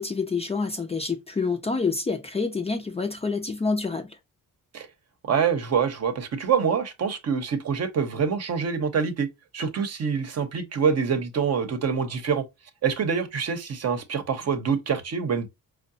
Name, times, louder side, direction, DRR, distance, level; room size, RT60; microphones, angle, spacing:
voice 1, 0.0-4.2, left 4 dB, 20° left, 0.5 m, -27 dB
voice 2, 5.2-9.3 9.5-12.4 12.8-15.5, right 6 dB, 50° right, 0.8 m, -25 dB
4.6 x 2.1 x 2.6 m
cardioid pair, 110°, 34 cm